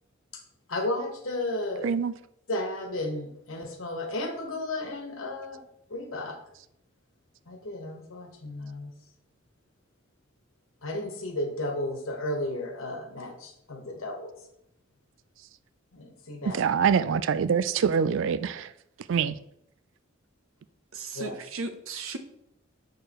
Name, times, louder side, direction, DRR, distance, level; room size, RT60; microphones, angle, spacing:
voice 1, 0.7-1.9 2.5-5.6 5.9-6.4 7.5-8.9 10.8-14.3 15.9-16.6 21.1-21.3, left 1 dB, 80° left, 1.3 m, -33 dB
voice 2, 16.5-18.7 19.1-19.3, right 6 dB, 65° right, 0.4 m, -24 dB
voice 3, 20.9-22.2, right 3 dB, 80° right, 0.8 m, -36 dB
6.6 x 6.4 x 3.0 m
head